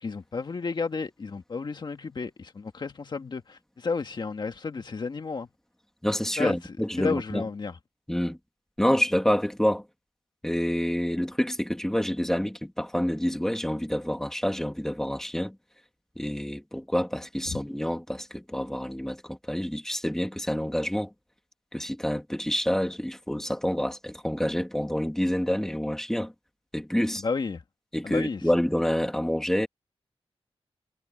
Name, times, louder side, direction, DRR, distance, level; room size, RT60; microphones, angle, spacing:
voice 1, 0.0-5.5 6.4-6.6 7.0-7.7 17.5-17.6 27.2-27.6 28.0-28.4, left 4 dB, 45° left, 1.9 m, -32 dB
voice 2, 6.0-7.4 8.1-8.4 8.8-9.8 10.4-15.6 16.2-21.1 21.7-26.3 26.7-27.2 27.9-29.7, equal, 5° left, 3.0 m, -27 dB
wide cardioid pair, 155°, 10 cm